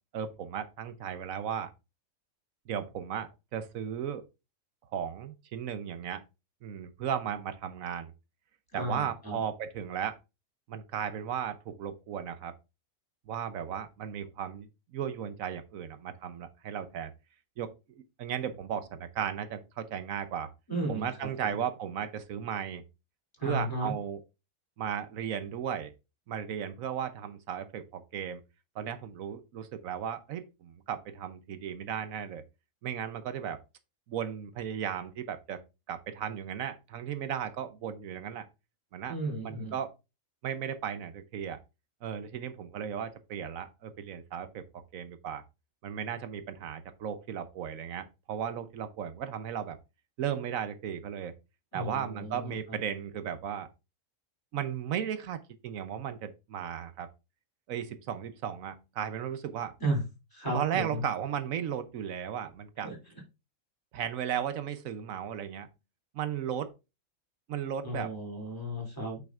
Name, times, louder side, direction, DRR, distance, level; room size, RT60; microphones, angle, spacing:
voice 1, 0.1-1.7 2.7-4.2 4.9-6.2 6.6-8.1 8.7-10.2 10.7-12.5 13.3-17.1 17.6-20.5 20.9-22.8 23.4-24.2 24.8-25.9 26.3-28.4 28.7-32.4 32.8-33.6 34.1-35.6 35.9-38.5 38.9-39.2 39.4-39.9 40.4-41.6 42.0-44.6 44.9-45.4 45.8-49.8 50.2-51.3 51.7-53.7 54.5-57.1 57.7-59.7 60.5-62.9 63.9-65.7 66.1-66.7 67.5-68.1, right 9 dB, 80° right, 1.1 m, -35 dB
voice 2, 8.7-9.4 20.7-21.6 23.4-23.9 39.1-39.7 51.7-52.8 59.8-60.0 60.3-61.0 62.8-63.0 67.8-69.2, right 1 dB, 15° left, 2.8 m, -34 dB
8.6 x 6.1 x 2.4 m
omnidirectional pair, 1.4 m